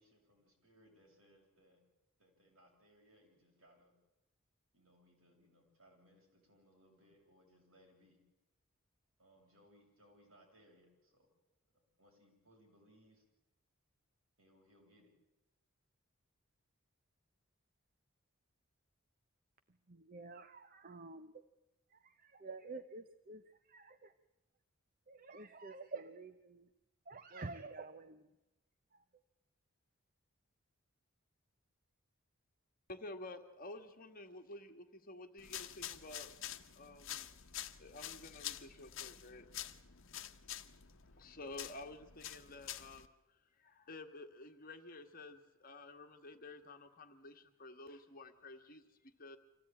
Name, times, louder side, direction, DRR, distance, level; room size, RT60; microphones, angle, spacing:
voice 1, 0.0-1.8 2.2-3.9 4.7-8.2 9.2-11.3 12.0-13.2 14.4-15.1, equal, 70° right, -1 dB, 7.2 m, -67 dB
voice 2, 19.9-21.5 21.9-24.1 25.1-26.7 27.1-28.4 28.9-29.0, right 3 dB, 40° right, 10 dB, 0.8 m, -50 dB
voice 3, 32.9-36.4 36.7-37.3 37.8-39.5 40.0-40.1 41.1-49.4, left 2 dB, 40° left, 6 dB, 1.7 m, -51 dB
sound 1, 35.4-43.1, left 11 dB, 60° left, 1.1 m, -48 dB
26.0 x 15.5 x 8.9 m, 0.96 s
head